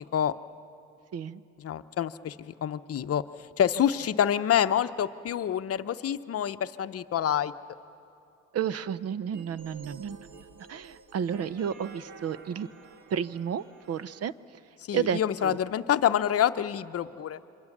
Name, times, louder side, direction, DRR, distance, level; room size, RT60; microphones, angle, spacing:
voice 1, 1.6-3.2 3.6-7.5 14.9-17.4, left 10 dB, 50° left, 10 dB, 0.8 m, -27 dB
voice 2, 8.5-10.2 10.7-12.7 13.1-14.3 14.9-15.6, right 8 dB, 55° right, 17 dB, 0.7 m, -31 dB
sound 1, 9.3-14.3, right 4 dB, 75° right, 1.9 m, -50 dB
27.5 x 24.5 x 7.3 m, 2.7 s
cardioid pair, 90°, 30 cm